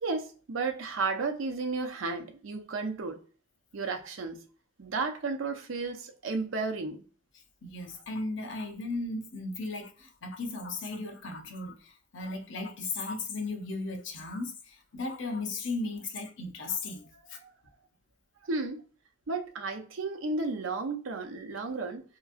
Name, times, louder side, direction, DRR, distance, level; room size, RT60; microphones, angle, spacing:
voice 1, 0.0-3.2 3.7-4.4 4.8-7.0 17.4-17.5 18.4-18.8 19.3-22.0, right 3 dB, 90° right, 0.6 m, -33 dB
voice 2, 7.6-17.4, left 3 dB, 65° left, 0.7 m, -36 dB
2.9 x 2.6 x 2.4 m
head